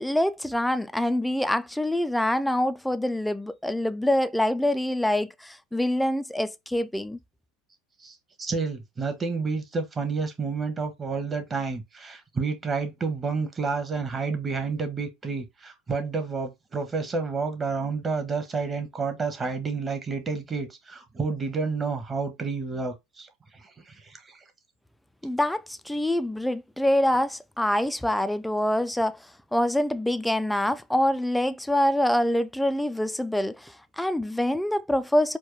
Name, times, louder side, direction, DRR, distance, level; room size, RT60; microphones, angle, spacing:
voice 1, 0.0-7.2 25.2-35.4, left 1 dB, 5° left, 0.4 m, -25 dB
voice 2, 8.0-23.3 23.5-24.4, right 4 dB, 25° right, 1.2 m, -30 dB
4.4 x 2.2 x 3.2 m
hypercardioid pair, 95°, 0 cm